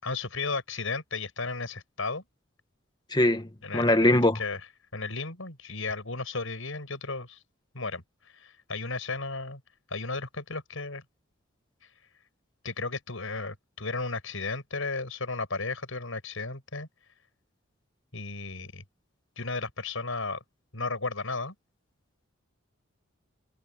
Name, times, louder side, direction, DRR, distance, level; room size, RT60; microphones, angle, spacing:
voice 1, 0.0-2.2 3.6-4.6 4.9-7.4 7.7-9.6 9.9-11.0 12.6-16.9 18.1-18.8 19.4-20.4 20.7-21.5, left 3 dB, 75° left, 5.3 m, -34 dB
voice 2, 3.1-4.4, left 1 dB, 20° left, 1.4 m, -22 dB
head